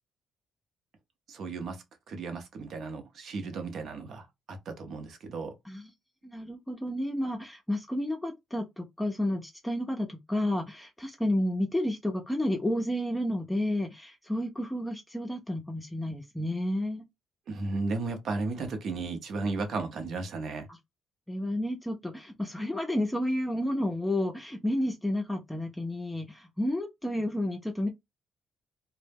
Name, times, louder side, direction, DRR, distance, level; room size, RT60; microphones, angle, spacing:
voice 1, 1.3-5.5 17.5-20.7, right 3 dB, 65° right, 0.7 m, -35 dB
voice 2, 6.2-17.0 20.7-20.8 21.3-27.9, left 1 dB, 10° left, 0.5 m, -31 dB
2.1 x 2.0 x 3.3 m
cardioid pair, 90°, 0 cm